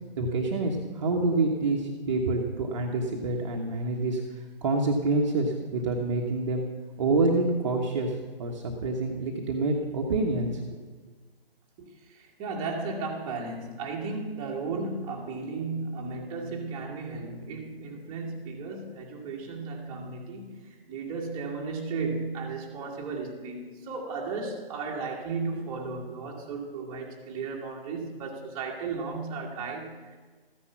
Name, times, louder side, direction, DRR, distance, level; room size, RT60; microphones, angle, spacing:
voice 1, 0.2-4.2 4.6-6.6 7.0-8.1 8.4-10.6, right 3 dB, 30° right, 0 dB, 1.3 m, -27 dB
voice 2, 12.1-30.2, right 4 dB, 15° right, -2 dB, 1.6 m, -35 dB
14.0 x 9.8 x 5.9 m, 1.4 s
figure-of-eight pair, 145°, 30 cm